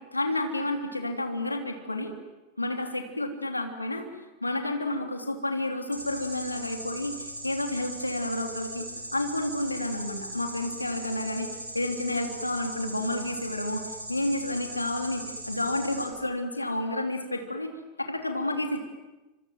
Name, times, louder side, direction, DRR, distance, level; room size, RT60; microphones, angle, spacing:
voice 1, 0.0-2.1 2.6-4.1 4.4-11.5 11.7-17.7 18.0-18.8, left 1 dB, 85° left, 5 dB, 3.1 m, -30 dB
sound 1, 5.9-16.0, right 1 dB, 90° right, 6.5 m, -39 dB
27.5 x 25.5 x 7.7 m, 1.1 s
figure-of-eight pair, 90°, 0 cm